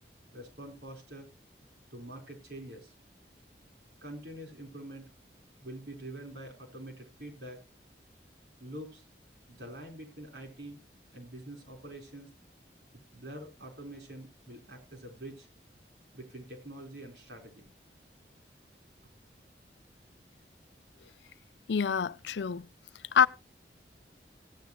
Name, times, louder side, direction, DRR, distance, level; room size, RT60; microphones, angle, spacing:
voice 1, 0.3-1.3 1.9-2.9 4.0-5.1 5.6-7.6 8.6-9.0 9.5-10.8 11.1-12.3 13.1-15.5 16.1-17.7, right 1 dB, 85° right, 4.1 m, -45 dB
voice 2, 21.7-22.7 23.1-23.3, left 7 dB, 85° left, 0.5 m, -26 dB
16.0 x 9.2 x 3.0 m
head